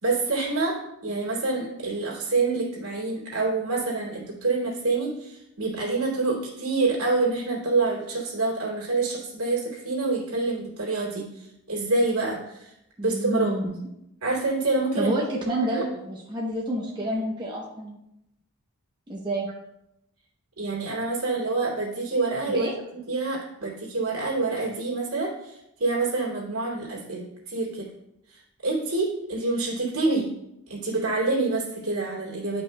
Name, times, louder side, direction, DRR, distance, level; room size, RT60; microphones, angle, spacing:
voice 1, 0.0-12.7 13.0-13.5 14.2-15.1 15.4-15.8 20.6-27.9 28.3-30.3 30.7-32.6, right 3 dB, 70° right, -3 dB, 2.6 m, -27 dB
voice 2, 13.0-13.8 14.9-18.0 19.1-19.5 22.5-22.7, right 1 dB, 20° right, -3 dB, 0.8 m, -29 dB
10.0 x 5.3 x 2.2 m, 0.83 s
head